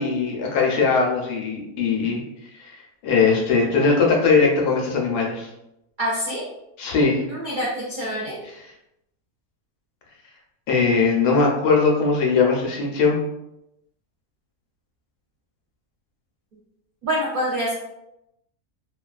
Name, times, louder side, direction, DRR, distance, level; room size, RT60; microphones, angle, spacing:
voice 1, 0.0-2.2 2.6-2.7 3.0-5.5 6.8-7.2 10.7-13.2, left 4 dB, 85° left, -1 dB, 1.2 m, -20 dB
voice 2, 6.0-6.4 7.3-8.4 17.0-17.7, equal, 90° right, -6 dB, 0.4 m, -26 dB
3.0 x 2.3 x 2.3 m, 0.85 s
omnidirectional pair, 1.6 m